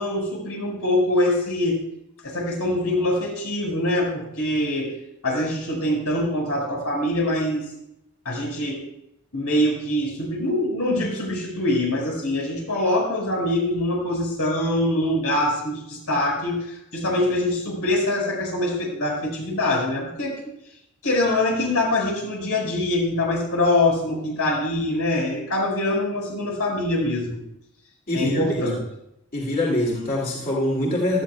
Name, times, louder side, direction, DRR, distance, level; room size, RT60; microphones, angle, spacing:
voice 1, 0.0-1.8 2.2-4.9 5.2-7.7 8.2-8.8 9.3-20.4 21.0-27.4 28.1-28.8, left 1 dB, 90° left, -2 dB, 5.1 m, -24 dB
voice 2, 28.1-28.7 29.3-31.2, left 1 dB, 40° left, -3 dB, 2.6 m, -24 dB
17.5 x 12.5 x 2.3 m, 0.80 s
head